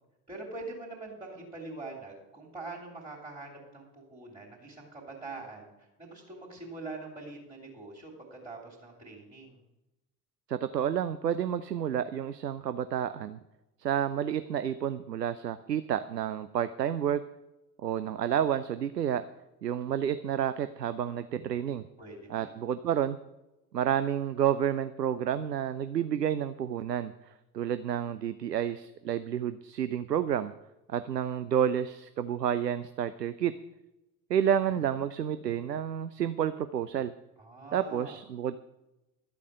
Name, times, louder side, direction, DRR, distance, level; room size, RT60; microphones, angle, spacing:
voice 1, 0.3-9.6 22.0-22.5 37.4-38.2, right 3 dB, 10° right, -5 dB, 3.5 m, -44 dB
voice 2, 10.5-13.4 13.8-17.2 17.8-19.2 19.6-21.8 22.3-23.2 23.7-30.5 30.9-33.5 34.3-37.1 37.7-38.6, right 9 dB, 85° right, 13 dB, 0.6 m, -30 dB
13.0 x 8.3 x 6.4 m, 0.97 s
figure-of-eight pair, 65°, 47 cm